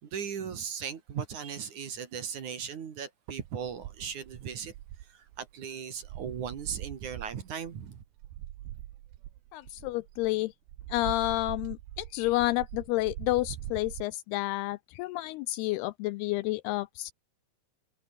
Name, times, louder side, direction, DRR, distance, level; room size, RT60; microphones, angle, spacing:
voice 1, 0.0-4.7 5.1-8.0, right 7 dB, 50° right, 3.2 m, -37 dB
sound 1, 3.4-5.7 6.0-10.3 10.7-14.0, right 14 dB, 70° right, 2.9 m, -43 dB
voice 2, 9.5-10.5 10.9-17.1, left 18 dB, 80° left, 2.4 m, -30 dB
omnidirectional pair, 4.9 m